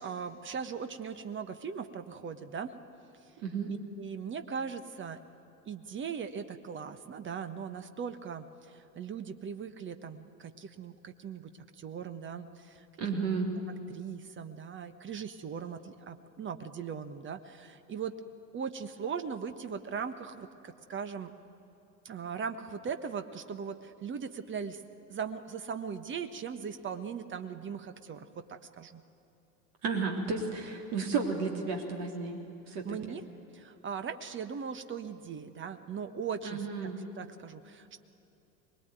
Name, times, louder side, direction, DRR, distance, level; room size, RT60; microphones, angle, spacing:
voice 1, 0.0-2.7 3.7-5.2 5.6-13.2 13.9-18.1 18.5-21.3 22.0-24.8 25.1-29.0 32.8-33.2 33.5-36.9 37.2-38.0, right 6 dB, 25° right, 9 dB, 1.3 m, -39 dB
voice 2, 3.4-3.7 13.0-13.6 29.8-32.4 32.7-33.2 36.4-37.0, right 4 dB, 50° right, 2 dB, 3.3 m, -33 dB
23.0 x 20.5 x 9.2 m, 2.9 s
figure-of-eight pair, 80°, 46 cm